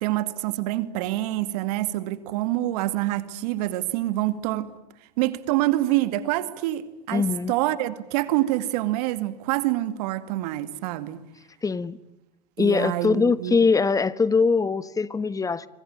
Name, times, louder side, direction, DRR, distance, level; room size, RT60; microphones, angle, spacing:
voice 1, 0.0-4.7 5.2-11.2 12.6-13.6, right 16 dB, 70° right, 2.2 m, -26 dB
voice 2, 7.1-7.5 11.6-12.0 12.6-15.7, left 4 dB, 15° left, 1.3 m, -22 dB
26.5 x 25.5 x 8.8 m
hypercardioid pair, 100°, 21 cm